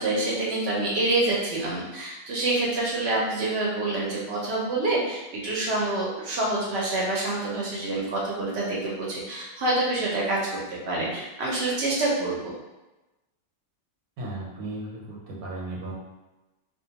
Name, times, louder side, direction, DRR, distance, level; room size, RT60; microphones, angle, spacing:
voice 1, 0.0-12.5, right 2 dB, 60° right, -4 dB, 0.7 m, -27 dB
voice 2, 14.2-15.9, right 2 dB, 85° right, -3 dB, 1.0 m, -35 dB
2.4 x 2.2 x 2.7 m, 1.0 s
omnidirectional pair, 1.5 m